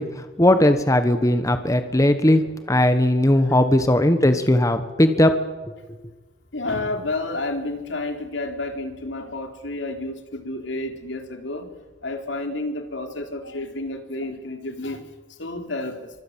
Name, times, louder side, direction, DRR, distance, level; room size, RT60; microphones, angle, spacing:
voice 1, 0.0-2.4 2.7-5.4, left 1 dB, 15° left, 9 dB, 1.4 m, -18 dB
voice 2, 6.5-11.8 12.0-15.0 15.3-16.1, left 2 dB, 75° left, 5 dB, 3.8 m, -30 dB
25.5 x 24.5 x 7.6 m, 1.2 s
head